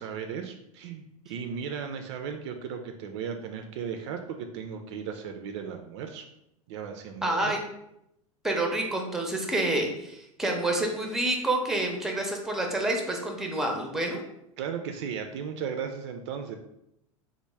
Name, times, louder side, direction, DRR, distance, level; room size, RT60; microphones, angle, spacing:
voice 1, 0.0-6.3 6.7-7.5 14.6-16.6, right 7 dB, 50° right, 5 dB, 0.4 m, -36 dB
voice 2, 7.2-7.6 8.4-14.2, right 1 dB, ahead, 2 dB, 0.5 m, -28 dB
3.5 x 2.0 x 3.1 m, 0.80 s
figure-of-eight pair, 85°, 18 cm